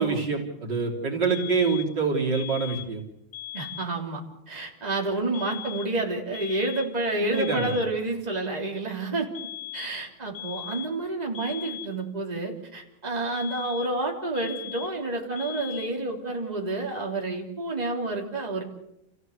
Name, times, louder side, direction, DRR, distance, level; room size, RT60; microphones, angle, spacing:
voice 1, 0.0-3.0 7.2-7.8, right 4 dB, 55° right, -1 dB, 4.0 m, -26 dB
sound 1, 1.3-2.0 2.3-3.0 3.3-4.0 5.3-6.0 6.3-7.0 7.3-8.0 9.3-10.0 10.3-11.0 11.3-12.0 13.4-14.0 14.4-15.0 15.4-16.0, left 14 dB, 55° left, 1.5 m, -39 dB
voice 2, 3.5-9.3 9.7-18.6, right 2 dB, 20° right, 0 dB, 3.5 m, -29 dB
29.0 x 15.5 x 8.2 m, 0.83 s
omnidirectional pair, 2.3 m